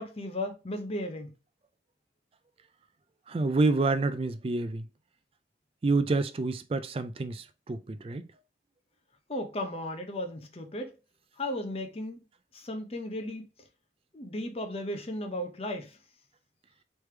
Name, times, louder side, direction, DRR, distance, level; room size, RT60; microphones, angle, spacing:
voice 1, 0.0-1.3 9.3-10.9 11.4-12.2 12.5-13.5 14.1-16.0, left 1 dB, 35° left, 0.7 m, -35 dB
voice 2, 3.3-4.8 5.8-8.2, right 3 dB, 35° right, 0.4 m, -28 dB
3.3 x 3.3 x 4.4 m
head